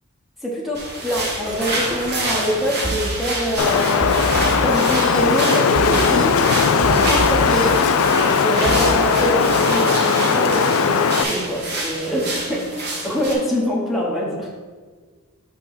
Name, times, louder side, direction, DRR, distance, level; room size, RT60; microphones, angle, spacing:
voice 1, 0.4-7.7 8.1-14.5, equal, ahead, -4 dB, 1.1 m, -25 dB
sound 1, 0.7-13.3, right 1 dB, 50° right, 1.4 m, -28 dB
sound 2, 1.1-1.2 1.5-2.0 2.8-3.0 4.0-5.2 5.7-6.2 6.8-7.7 8.1-8.8, right 2 dB, 20° right, 0.6 m, -28 dB
Wind, 3.6-11.2, left 5 dB, 70° left, 0.4 m, -18 dB
6.0 x 3.7 x 6.0 m, 1.5 s
head